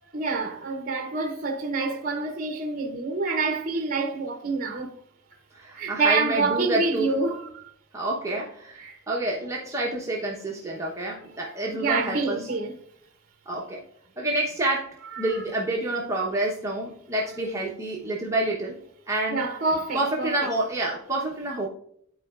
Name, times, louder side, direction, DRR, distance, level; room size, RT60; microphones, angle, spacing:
voice 1, 0.1-4.9 5.7-7.7 8.8-9.0 11.7-12.7 15.2-15.4 19.3-20.5, right 3 dB, 40° right, 0.8 m, -27 dB
voice 2, 5.5-7.1 7.9-8.8 9.1-12.5 13.5-13.8 14.2-18.8 19.1-19.5 19.9-21.7, right 2 dB, 15° right, 1.0 m, -28 dB
12.5 x 4.4 x 2.5 m
head